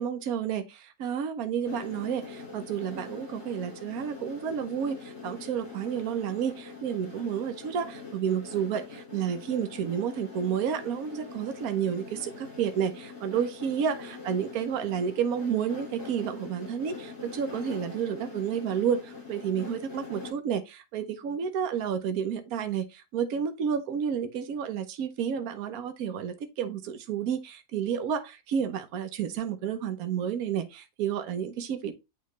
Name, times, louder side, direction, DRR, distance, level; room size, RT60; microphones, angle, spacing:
voice 1, 0.0-31.9, right 8 dB, 70° right, 1.3 m, -31 dB
sound 1, 1.6-20.3, left 4 dB, 70° left, 4.7 m, -43 dB
9.4 x 3.2 x 3.2 m
omnidirectional pair, 1.7 m